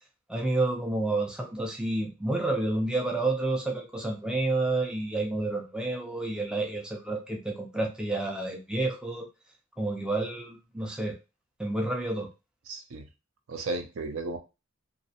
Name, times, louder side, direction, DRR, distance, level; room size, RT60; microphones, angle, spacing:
voice 1, 0.3-9.3 9.8-11.2 11.6-12.3, right 2 dB, 5° right, 1 dB, 0.3 m, -29 dB
voice 2, 12.7-13.1 13.5-14.4, right 2 dB, 70° right, 7 dB, 0.5 m, -34 dB
2.4 x 2.0 x 2.7 m, 0.28 s
head